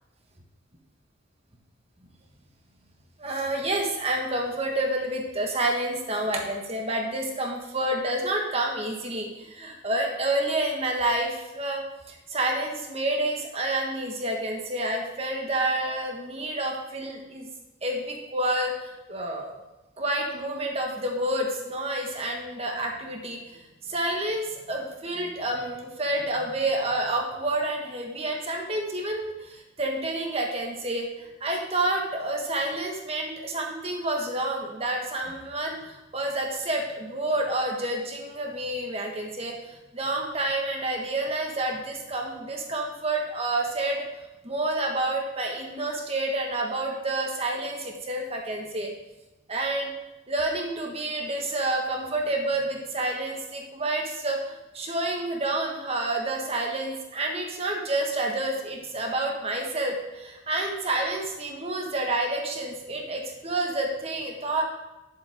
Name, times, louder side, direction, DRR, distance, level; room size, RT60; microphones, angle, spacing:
voice 1, 3.2-17.5 17.8-19.5 20.0-23.4 23.9-31.1 31.4-39.5 39.9-44.1 44.4-48.9 49.5-49.9 50.3-54.4 54.7-64.6, right 1 dB, 30° right, 1 dB, 1.6 m, -29 dB
10.5 x 7.4 x 3.7 m, 1.0 s
head